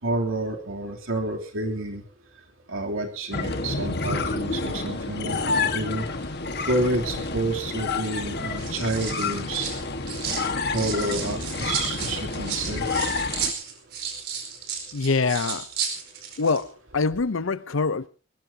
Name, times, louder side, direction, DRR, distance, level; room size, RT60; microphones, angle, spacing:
voice 1, 0.0-2.0 2.7-6.1 6.6-9.7 10.2-10.4 10.7-12.9, right 2 dB, 90° right, 3.1 m, -29 dB
sound 1, 3.3-13.5, left 3 dB, 50° left, 1.6 m, -29 dB
sound 2, 7.0-7.5 8.4-10.5 10.7-16.6 16.9-17.2, right 7 dB, 50° right, 4.7 m, -33 dB
voice 2, 14.9-15.6 16.4-18.1, left 4 dB, 75° left, 0.7 m, -24 dB
21.0 x 19.5 x 2.8 m
head